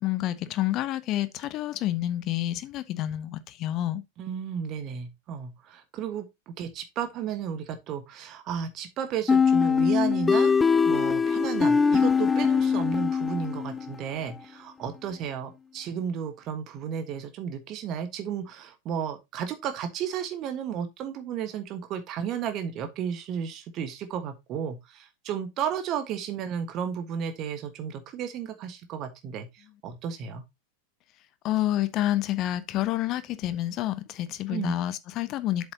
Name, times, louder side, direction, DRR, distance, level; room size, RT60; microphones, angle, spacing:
voice 1, 0.0-4.0 31.4-35.7, left 13 dB, 35° left, 0.7 m, -28 dB
voice 2, 4.2-10.5 10.8-30.4 34.5-34.7, right 8 dB, 35° right, 1.4 m, -33 dB
sound 1, 9.3-13.9, left 5 dB, 15° left, 0.4 m, -22 dB
7.7 x 7.2 x 2.9 m
figure-of-eight pair, 90°, 0 cm